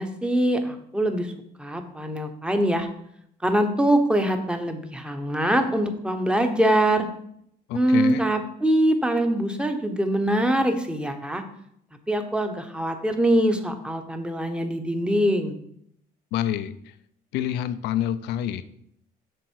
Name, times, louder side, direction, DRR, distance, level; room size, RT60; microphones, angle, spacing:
voice 1, 0.0-1.3 1.6-2.9 3.4-7.1 7.7-11.4 12.1-15.6, right 1 dB, 5° right, 6 dB, 1.0 m, -23 dB
voice 2, 7.7-8.2 16.3-16.9 17.3-18.6, left 11 dB, 90° left, 13 dB, 0.6 m, -27 dB
7.7 x 6.3 x 4.7 m, 0.71 s
cardioid pair, 110°, 17 cm